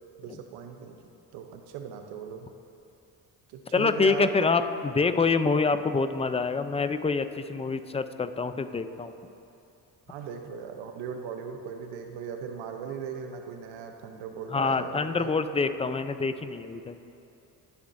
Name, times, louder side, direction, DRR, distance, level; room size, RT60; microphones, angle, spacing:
voice 1, 0.2-1.0 1.3-2.5 3.5-4.3 10.1-15.3, right 7 dB, 85° right, 5 dB, 0.9 m, -38 dB
voice 2, 3.7-4.6 4.9-9.1 14.5-17.0, left 4 dB, 15° left, 10 dB, 0.5 m, -26 dB
20.0 x 7.1 x 2.7 m, 2.8 s
supercardioid pair, 65°, 43 cm